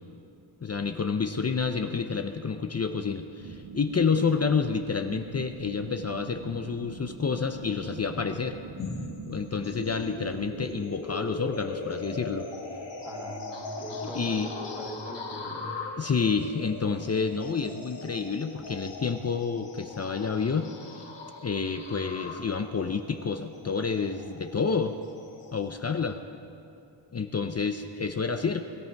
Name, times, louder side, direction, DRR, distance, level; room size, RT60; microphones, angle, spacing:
voice 1, 0.6-8.6 9.3-12.5 14.1-14.5 16.0-20.7 21.4-24.9 25.5-26.2 27.1-28.6, left 5 dB, 30° left, 6 dB, 0.6 m, -29 dB
sound 1, 3.4-10.8, right 8 dB, 65° right, 0.7 m, -44 dB
sound 2, 8.8-25.7, left 3 dB, 60° left, 2.1 m, -40 dB
voice 2, 13.0-15.7, equal, 5° right, -3 dB, 2.4 m, -41 dB
21.5 x 13.5 x 4.6 m, 2.6 s
wide cardioid pair, 140°, 49 cm